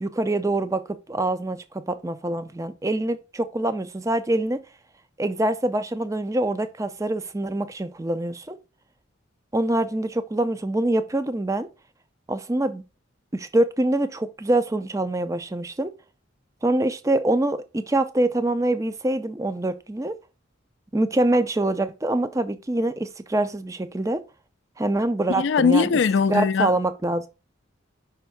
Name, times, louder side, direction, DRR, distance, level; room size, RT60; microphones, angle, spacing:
voice 1, 0.0-4.6 5.2-8.6 9.5-11.7 12.3-12.8 13.3-15.9 16.6-20.1 20.9-24.2 24.8-25.9 26.3-27.3, right 1 dB, 15° right, 0.4 m, -25 dB
voice 2, 25.4-26.7, left 5 dB, 60° left, 0.4 m, -20 dB
5.5 x 3.4 x 5.6 m
head